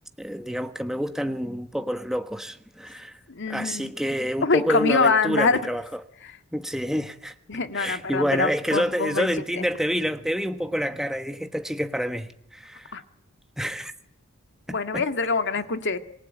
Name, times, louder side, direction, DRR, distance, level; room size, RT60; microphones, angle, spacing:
voice 1, 0.2-3.1 3.5-5.8 6.5-7.3 7.7-12.9 13.6-13.9 14.7-15.0, equal, ahead, 1.3 m, -28 dB
voice 2, 3.3-3.9 4.4-5.6 6.2-6.4 7.5-9.3 9.6-9.7 12.9-13.0 14.7-16.0, left 4 dB, 55° left, 2.1 m, -24 dB
26.5 x 21.0 x 9.3 m
head